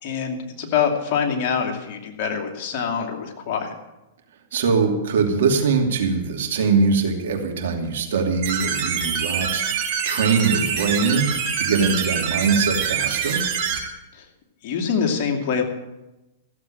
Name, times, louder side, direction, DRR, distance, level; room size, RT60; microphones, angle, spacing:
voice 1, 0.0-3.7 14.6-15.6, left 6 dB, 50° left, 3 dB, 2.6 m, -24 dB
voice 2, 4.5-11.3 11.6-13.4, right 5 dB, 70° right, 3 dB, 2.7 m, -22 dB
sound 1, 8.4-13.8, right 7 dB, 45° right, 4.0 m, -25 dB
14.5 x 7.8 x 9.0 m, 0.98 s
hypercardioid pair, 110°, 0 cm